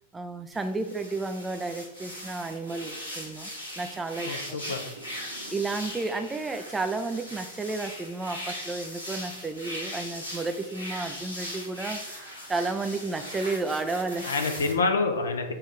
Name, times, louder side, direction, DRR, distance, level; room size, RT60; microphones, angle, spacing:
voice 1, 0.1-3.5 3.8-4.4 5.5-14.3, right 3 dB, 10° right, 8 dB, 0.3 m, -32 dB
sound 1, 0.5-14.7, equal, 90° left, 1.1 m, -39 dB
voice 2, 4.2-4.8 14.2-15.5, left 3 dB, 70° left, 6 dB, 0.5 m, -27 dB
6.7 x 2.4 x 3.3 m, 0.93 s
figure-of-eight pair, 90°, 0 cm